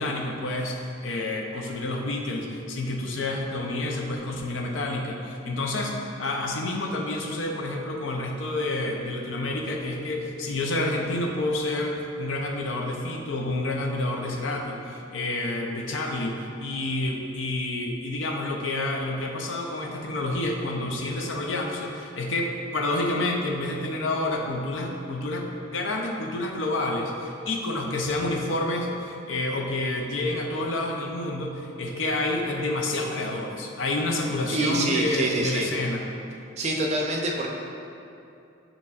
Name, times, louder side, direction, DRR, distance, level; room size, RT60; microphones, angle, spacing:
voice 1, 0.0-36.0, left 2 dB, 85° left, 1 dB, 0.5 m, -29 dB
voice 2, 34.4-35.7 36.6-37.5, right 1 dB, 35° right, 0 dB, 0.4 m, -26 dB
6.7 x 2.9 x 2.4 m, 2.7 s
head